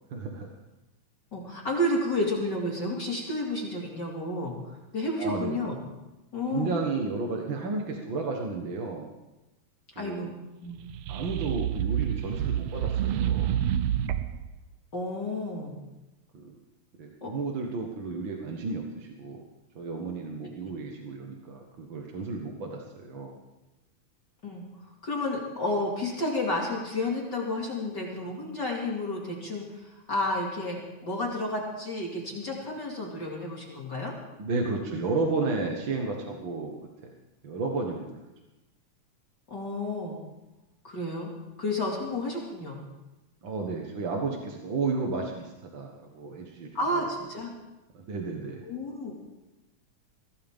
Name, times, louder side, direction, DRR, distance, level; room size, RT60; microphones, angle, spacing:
voice 1, 0.1-0.5 5.2-5.6 6.5-9.1 10.0-10.3 11.1-13.5 16.3-16.6 17.0-19.4 19.8-23.4 34.4-36.7 37.0-37.1 37.4-38.2 43.4-46.7 47.9-48.6, right 3 dB, 50° right, 1 dB, 1.9 m, -32 dB
voice 2, 1.3-4.6 4.9-5.8 6.3-6.8 9.9-10.3 10.6-10.8 14.9-15.8 17.2-17.3 24.4-34.1 39.5-40.2 40.8-41.3 41.6-42.8 46.7-47.5 48.6-49.1, left 1 dB, 35° left, -2 dB, 2.8 m, -31 dB
sound 1, 10.8-14.5, right 10 dB, 75° right, 1.5 m, -28 dB
22.5 x 17.0 x 3.7 m, 1.0 s
omnidirectional pair, 3.5 m